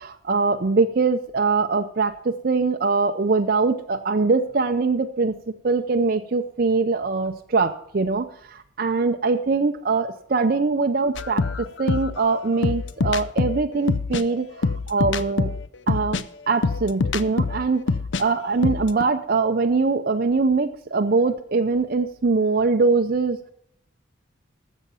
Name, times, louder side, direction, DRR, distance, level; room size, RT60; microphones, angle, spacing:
voice 1, 0.0-5.3 5.6-11.4 11.8-15.5 15.9-17.8 18.2-23.5, right 4 dB, 45° right, 5 dB, 0.5 m, -22 dB
sound 1, 11.2-18.2 18.5-19.0, left 4 dB, 65° left, 0.5 m, -25 dB
13.0 x 7.1 x 5.6 m, 0.68 s
head